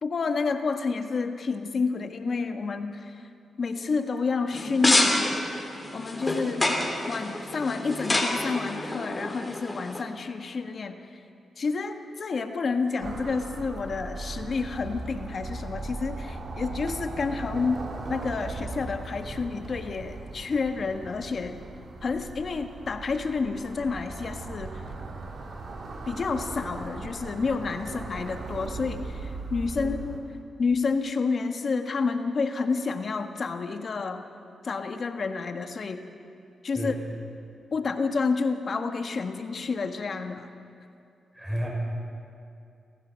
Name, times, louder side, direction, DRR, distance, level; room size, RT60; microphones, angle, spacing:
voice 1, 0.0-3.3 3.6-5.2 5.9-11.2 11.6-17.8 18.1-21.5 22.0-24.8 26.1-30.2 30.6-34.2 34.6-36.0 36.6-36.9 37.7-40.5, left 4 dB, 55° left, 6 dB, 1.5 m, -29 dB
sound 1, 4.5-10.0, left 1 dB, 20° left, 3.6 m, -27 dB
sound 2, 13.0-30.2, right 3 dB, 60° right, 2.8 m, -38 dB
voice 2, 41.3-41.7, equal, 10° right, -2 dB, 6.0 m, -32 dB
27.5 x 15.0 x 6.5 m, 2.5 s
cardioid pair, 70°, 0 cm